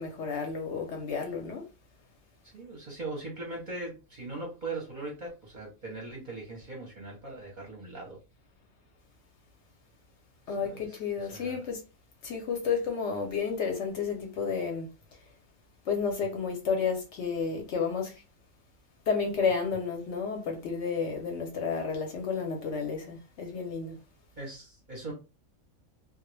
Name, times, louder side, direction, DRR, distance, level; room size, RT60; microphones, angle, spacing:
voice 1, 0.0-1.7 10.5-11.8 12.2-14.9 15.9-18.1 19.1-24.0, left 5 dB, 65° left, 0.8 m, -31 dB
voice 2, 2.5-8.2 10.5-11.6 24.4-25.1, right 2 dB, 45° right, 0.7 m, -40 dB
2.2 x 2.0 x 3.0 m
omnidirectional pair, 1.4 m